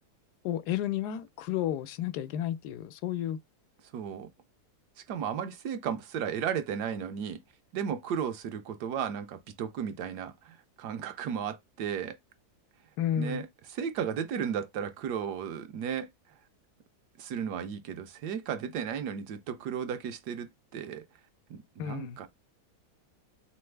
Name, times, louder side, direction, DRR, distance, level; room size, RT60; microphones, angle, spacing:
voice 1, 0.4-3.4 13.0-13.4 21.8-22.2, left 11 dB, 80° left, 1.2 m, -32 dB
voice 2, 3.9-4.3 5.1-7.4 7.7-12.2 13.2-16.1 17.2-21.0 21.5-22.3, right 8 dB, 80° right, 1.3 m, -34 dB
3.8 x 3.4 x 3.2 m
omnidirectional pair, 1.7 m